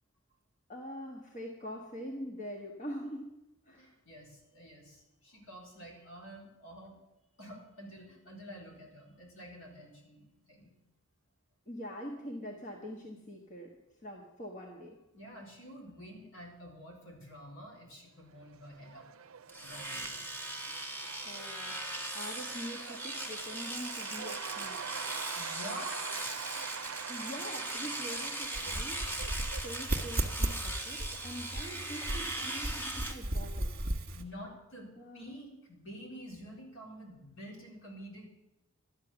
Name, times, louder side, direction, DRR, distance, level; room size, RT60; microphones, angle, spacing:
voice 1, 0.7-3.3 3.7-3.9 11.7-13.7 14.0-15.0 21.2-24.8 27.1-29.0 29.6-33.7 35.0-35.3, equal, 35° left, 0 dB, 1.5 m, -44 dB
voice 2, 3.7-7.0 7.4-10.7 15.1-19.1 19.6-20.1 25.3-26.4 34.1-38.2, equal, 65° left, -1 dB, 4.0 m, -48 dB
Cheering / Applause / Crowd, 18.3-31.8, right 7 dB, 75° right, 0.5 m, -46 dB
Domestic sounds home sounds, 19.5-33.1, right 1 dB, 10° left, 1.4 m, -39 dB
sound 1, 28.5-34.2, right 1 dB, 45° right, 1.5 m, -36 dB
12.5 x 9.9 x 7.0 m, 0.95 s
head